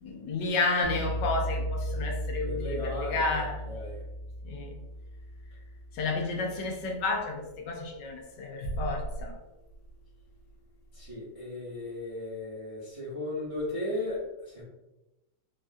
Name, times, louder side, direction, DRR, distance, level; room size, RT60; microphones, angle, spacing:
voice 1, 0.0-3.9 4.4-4.8 5.9-9.3, left 3 dB, 80° left, 1 dB, 1.2 m, -31 dB
sound 1, 0.8-6.8, equal, 85° right, 1.3 m, -36 dB
voice 2, 2.4-4.0 10.9-14.6, left 1 dB, 35° right, -8 dB, 0.5 m, -36 dB
3.3 x 2.3 x 2.5 m, 1.0 s
omnidirectional pair, 1.9 m